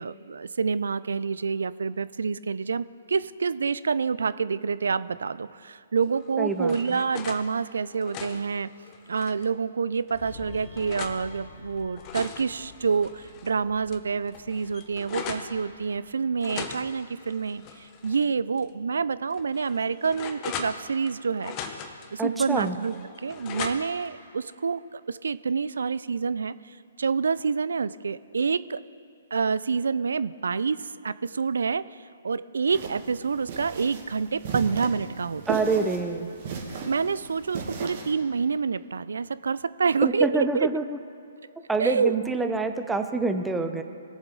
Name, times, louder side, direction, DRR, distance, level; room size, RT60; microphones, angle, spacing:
voice 1, 0.0-8.7 9.1-21.6 22.1-28.8 29.3-35.6 36.9-40.7 41.4-41.5 41.8-42.1, right 5 dB, 75° right, 17 dB, 0.4 m, -27 dB
sound 1, 6.1-7.4 7.9-9.5 10.1-11.2 11.8-13.5 13.9-14.0 14.3-15.5 16.4-18.2 18.6-18.7 19.3-21.1 21.4-22.1 22.6-24.1, left 7 dB, 30° left, 0.9 m, -39 dB
voice 2, 6.4-7.0 22.2-22.8 35.5-36.3 40.0-40.8 41.7-43.8, right 3 dB, 5° right, 7 dB, 0.7 m, -26 dB
sound 2, 10.1-19.2 19.5-19.8, left 4 dB, 50° left, 2.4 m, -50 dB
sound 3, 32.7-38.1, right 5 dB, 50° right, 1.8 m, -36 dB
20.0 x 7.2 x 3.9 m, 2.7 s
figure-of-eight pair, 130°, 0 cm